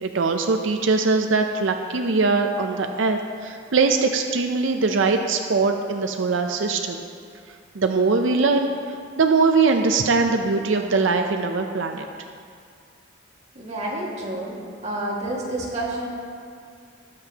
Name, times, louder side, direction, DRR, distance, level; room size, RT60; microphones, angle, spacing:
voice 1, 0.0-7.0 7.7-8.7 9.2-12.1, right 4 dB, 90° right, 4 dB, 0.6 m, -21 dB
voice 2, 13.5-14.5 14.8-16.1, right 1 dB, 35° right, -4 dB, 2.0 m, -29 dB
20.0 x 7.7 x 2.9 m, 2.3 s
head